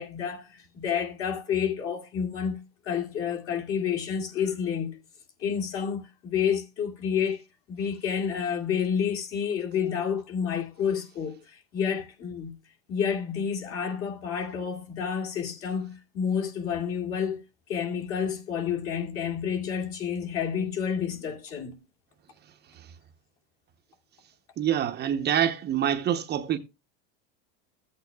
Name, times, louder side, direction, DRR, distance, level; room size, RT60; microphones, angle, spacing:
voice 1, 0.0-5.0 5.4-7.4 7.7-12.5 12.9-17.4 17.7-21.8, left 7 dB, 45° left, 2.4 m, -29 dB
voice 2, 24.6-26.6, right 10 dB, 30° right, 0.8 m, -26 dB
14.0 x 8.4 x 2.3 m
supercardioid pair, 130°, 31 cm